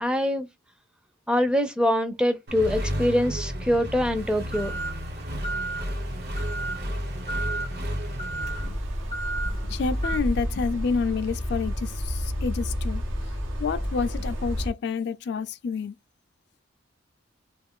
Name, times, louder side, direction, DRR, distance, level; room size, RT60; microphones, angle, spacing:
voice 1, 0.0-0.5 1.3-4.7, left 1 dB, 5° right, 0.4 m, -24 dB
Accelerating revving vroom, 2.5-8.7, equal, 55° right, 1.0 m, -32 dB
sound 1, 4.2-10.2, right 3 dB, 35° right, 0.7 m, -35 dB
sound 2, 8.4-14.7, equal, 85° right, 1.0 m, -30 dB
voice 2, 9.4-13.0 13.6-15.9, left 5 dB, 60° left, 0.3 m, -29 dB
2.4 x 2.3 x 3.6 m
head